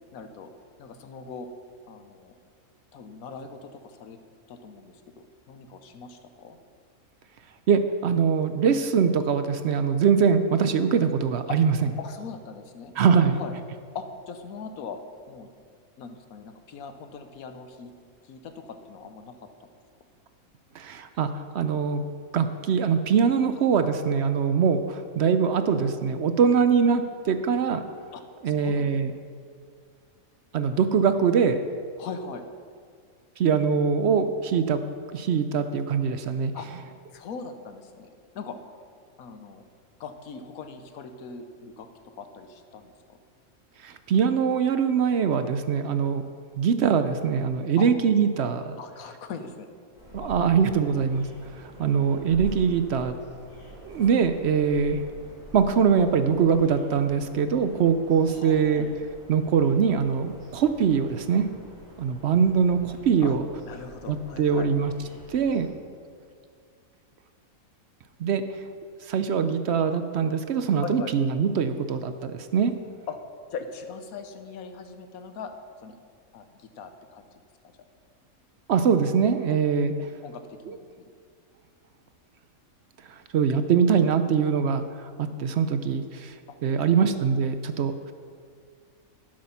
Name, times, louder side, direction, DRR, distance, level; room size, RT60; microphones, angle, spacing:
voice 1, 0.1-0.5 0.8-1.5 1.9-2.3 2.9-4.2 4.5-6.6 11.5-11.6 12.0-12.9 13.2-13.5 13.9-15.0 15.3-15.5 16.0-17.9 18.2-19.4 28.1-29.0 32.0-32.4 36.5-36.7 37.1-38.1 38.3-38.6 39.2-39.7 40.0-41.9 42.2-43.2 47.8-47.9 48.8-49.7 50.2-50.5 58.3-58.9 63.2-63.4 63.6-64.7 70.8-71.1 73.1-73.2 73.5-75.5 75.8-76.0 76.3-77.3 80.2-81.1 86.5-87.1, left 5 dB, 75° left, 7 dB, 1.3 m, -40 dB
voice 2, 7.7-11.7 13.0-13.4 20.7-21.3 21.5-22.1 22.3-27.8 28.4-29.1 30.5-31.6 33.4-34.8 35.1-36.5 43.8-46.2 46.6-48.8 50.1-51.3 51.6-53.1 53.8-55.0 55.5-58.9 59.3-61.5 62.0-63.4 64.1-64.9 65.3-65.7 68.2-68.4 69.1-72.7 78.7-79.9 83.3-84.8 85.2-86.3 86.6-88.1, right 6 dB, 65° right, 9 dB, 0.7 m, -23 dB
sound 1, 49.9-65.7, right 1 dB, 60° left, 3.4 m, -46 dB
11.5 x 7.6 x 5.7 m, 2.1 s
omnidirectional pair, 1.5 m